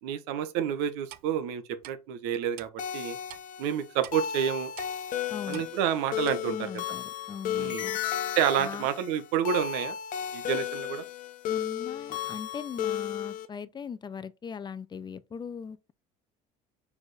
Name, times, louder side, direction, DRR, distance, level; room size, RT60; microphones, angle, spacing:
voice 1, 0.0-3.2 3.6-4.7 5.5-6.7 7.5-7.8 8.4-9.9 10.3-11.0, right 9 dB, 80° right, 1.0 m, -29 dB
Clock, 1.1-1.3 1.8-1.9 2.6-2.7 3.3-3.4 4.0-4.2 4.8-4.9 5.5-5.7 6.2-6.4, right 14 dB, 60° right, 0.6 m, -45 dB
sound 1, 2.8-13.5, left 9 dB, 50° left, 0.9 m, -34 dB
voice 2, 5.3-5.6 6.5-8.0 8.6-8.9 11.5-15.9, left 6 dB, 25° left, 0.5 m, -39 dB
4.8 x 4.3 x 4.8 m
supercardioid pair, 110°, 17 cm